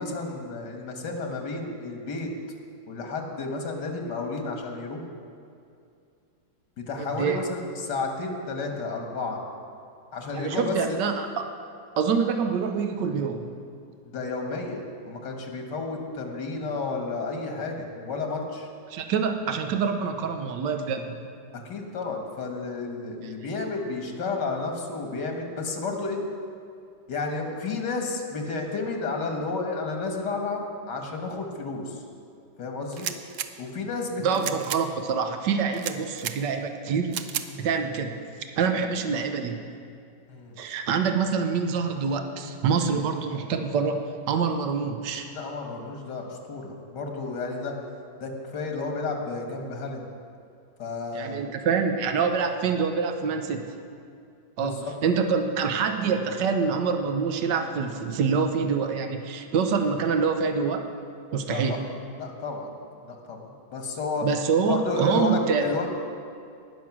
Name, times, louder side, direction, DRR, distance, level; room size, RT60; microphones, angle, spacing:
voice 1, 0.0-2.3 2.9-5.1 6.8-9.4 10.1-11.0 14.1-18.7 21.5-26.2 27.1-32.0 32.6-33.1 33.6-34.4 37.5-37.7 40.3-40.5 42.4-42.5 42.8-43.0 45.3-47.7 48.2-50.1 50.8-51.5 54.6-54.9 61.5-61.8 62.2-62.7 63.0-64.3 64.7-65.9, left 3 dB, 90° left, 3 dB, 2.1 m, -32 dB
voice 2, 7.0-7.4 10.3-11.3 12.0-13.5 18.9-21.2 34.2-37.1 37.6-38.2 38.6-39.6 40.6-45.3 51.1-53.7 54.6-60.9 61.3-61.8 64.2-65.9, right 5 dB, 85° right, 6 dB, 1.5 m, -26 dB
sound 1, 32.9-33.5 34.3-34.8 35.7-36.4 37.1-37.5, right 10 dB, 65° right, 0.8 m, -32 dB
18.5 x 6.4 x 6.1 m, 2.5 s
omnidirectional pair, 1.8 m